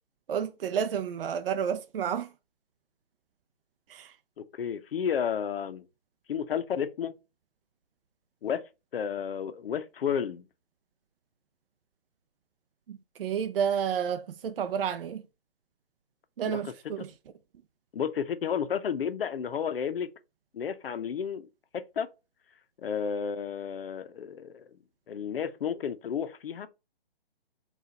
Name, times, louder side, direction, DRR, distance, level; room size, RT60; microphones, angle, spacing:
voice 1, 0.3-2.3 3.9-4.2 12.9-15.2 16.4-17.1, right 8 dB, 65° right, 0.5 m, -30 dB
voice 2, 4.4-5.8 6.3-7.1 8.4-8.6 8.9-10.4 16.4-16.7 17.9-20.1 20.5-21.5 21.7-22.1 22.8-24.6 25.1-26.7, left 7 dB, 65° left, 0.6 m, -32 dB
4.1 x 2.4 x 3.9 m
hypercardioid pair, 150°, 31 cm